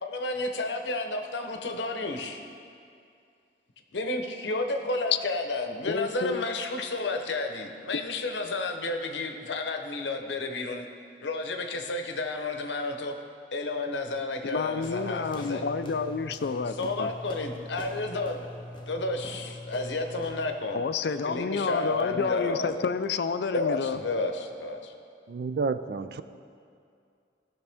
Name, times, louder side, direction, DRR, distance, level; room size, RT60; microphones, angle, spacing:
voice 1, 0.0-2.4 3.9-10.9 11.2-13.1 13.5-15.7 16.8-18.4 18.9-20.8 21.2-22.8 23.5-24.9, left 2 dB, 90° left, 5 dB, 0.8 m, -31 dB
voice 2, 5.9-6.4 14.5-17.1 20.7-24.0, left 5 dB, 70° left, 11 dB, 0.4 m, -30 dB
sound 1, 14.8-20.6, left 1 dB, 25° left, 0.7 m, -42 dB
voice 3, 25.3-26.2, right 4 dB, 60° right, 12 dB, 0.3 m, -30 dB
16.5 x 6.0 x 3.5 m, 2.4 s
head